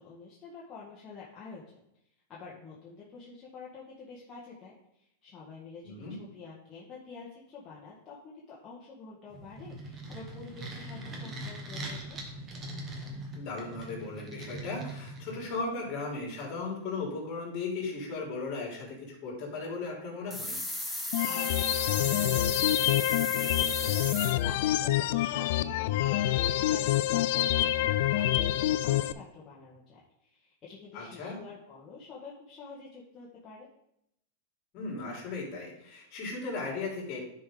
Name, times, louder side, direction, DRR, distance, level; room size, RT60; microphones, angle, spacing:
voice 1, 0.0-1.8 2.3-12.2 21.2-33.7, left 4 dB, 25° left, -6 dB, 1.6 m, -48 dB
voice 2, 5.8-6.1 13.3-20.6 30.9-31.4 34.7-37.2, left 3 dB, 40° left, -1 dB, 3.4 m, -36 dB
sound 1, 9.3-15.6, right 1 dB, 25° right, 1.7 m, -41 dB
sound 2, 20.3-24.3, left 1 dB, ahead, 1.1 m, -35 dB
sound 3, 21.1-29.1, left 13 dB, 60° left, 0.4 m, -27 dB
10.5 x 5.1 x 3.8 m, 0.77 s
supercardioid pair, 140°, 0 cm